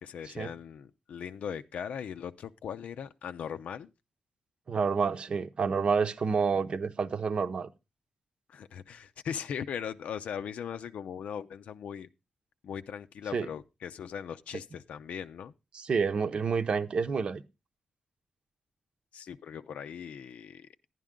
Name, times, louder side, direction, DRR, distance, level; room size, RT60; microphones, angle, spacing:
voice 1, 0.0-3.9 8.5-12.1 12.6-15.5 19.1-20.7, left 8 dB, 85° left, 0.5 m, -39 dB
voice 2, 4.7-7.7 13.3-13.5 15.7-17.4, right 5 dB, 50° right, 0.8 m, -28 dB
11.0 x 10.5 x 3.7 m
wide cardioid pair, 125°, 2 cm